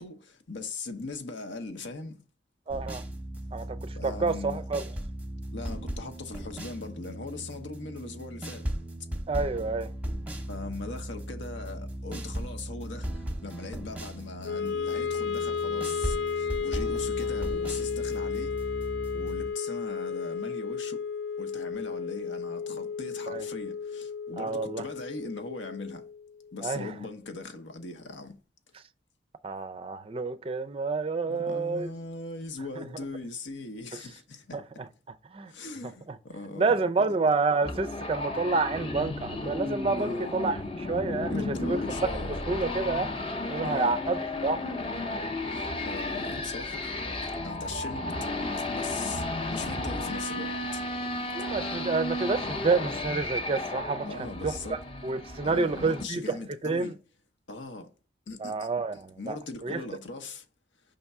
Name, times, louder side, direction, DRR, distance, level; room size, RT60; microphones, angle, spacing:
voice 1, 0.0-2.2 4.0-4.7 5.5-8.7 10.5-18.6 19.1-21.0 21.4-26.1 26.5-28.4 31.3-34.8 35.5-37.1 40.0-40.4 41.3-42.5 43.6-44.0 45.5-46.9 47.4-48.1 48.5-50.9 54.0-54.8 55.4-57.0 57.5-57.9 58.3-60.4, left 3 dB, 90° left, 0.9 m, -40 dB
sound 1, 2.7-19.5, right 1 dB, 10° right, 0.8 m, -37 dB
voice 2, 2.7-3.0 3.5-3.8 4.0-4.8 9.3-9.9 23.3-23.4 24.4-24.8 26.6-26.9 29.4-31.9 34.5-34.6 35.3-35.5 36.6-41.8 42.5-43.2 43.5-44.6 51.3-54.1 54.4-54.5 55.0-56.4 56.6-56.9 58.4-59.4 59.6-59.8, right 4 dB, 30° right, 0.4 m, -28 dB
Wind instrument woodwind instrument, 14.4-26.7, left 6 dB, 70° left, 0.4 m, -33 dB
sound 2, 37.6-56.0, left 2 dB, 30° left, 0.6 m, -33 dB
5.2 x 3.5 x 5.4 m
head